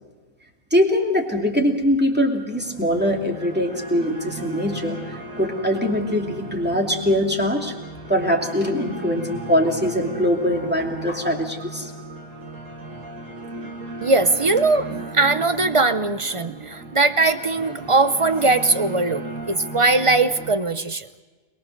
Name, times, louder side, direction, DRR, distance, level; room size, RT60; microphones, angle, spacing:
voice 1, 0.7-5.0 5.4-7.7 8.1-11.9, equal, 5° right, 1 dB, 2.5 m, -22 dB
sound 1, 2.5-20.5, right 2 dB, 65° right, 2.5 m, -36 dB
voice 2, 14.0-21.1, right 3 dB, 30° right, 12 dB, 0.6 m, -20 dB
22.5 x 22.5 x 6.5 m, 1.3 s
omnidirectional pair, 1.5 m